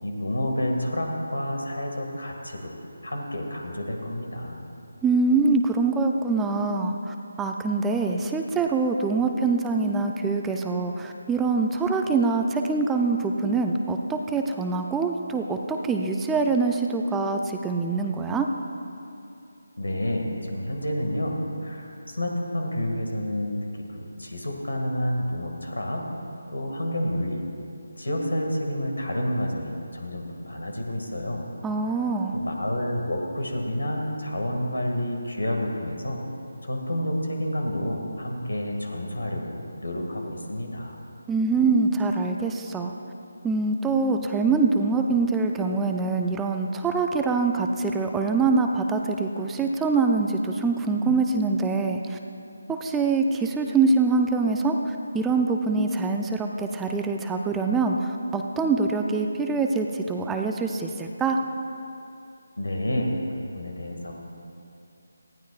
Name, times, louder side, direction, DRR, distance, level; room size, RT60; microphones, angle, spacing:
voice 1, 0.0-2.7 3.0-4.6 19.8-26.1 26.5-27.4 28.0-31.4 31.9-32.0 32.3-36.2 36.6-41.0 62.6-64.1, left 1 dB, 85° left, 2 dB, 2.1 m, -29 dB
voice 2, 5.0-18.5 31.6-32.4 41.3-42.9 43.4-52.2 52.7-61.4, right 4 dB, 10° right, 3 dB, 0.5 m, -24 dB
19.0 x 14.5 x 2.5 m, 2.7 s
figure-of-eight pair, 160°, 0 cm